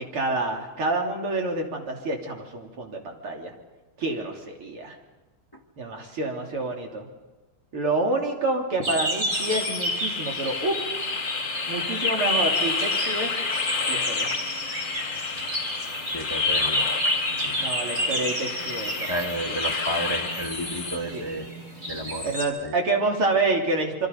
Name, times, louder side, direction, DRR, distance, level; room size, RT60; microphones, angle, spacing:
voice 1, 0.0-3.5 4.0-5.0 5.8-7.1 7.7-10.8 11.7-13.4 13.9-14.3 17.6-19.2 19.5-19.6 21.1-21.2 22.2-24.1, right 2 dB, 80° right, 1 dB, 3.9 m, -28 dB
sound 1, 8.8-22.5, right 1 dB, 35° right, 4.0 m, -32 dB
sound 2, 9.3-21.0, left 4 dB, 35° left, 0.9 m, -29 dB
voice 2, 16.1-16.9 17.4-17.7 19.1-21.5 21.9-22.7, right 1 dB, 10° left, 4 dB, 1.4 m, -32 dB
27.0 x 24.0 x 5.3 m, 1.2 s
omnidirectional pair, 2.4 m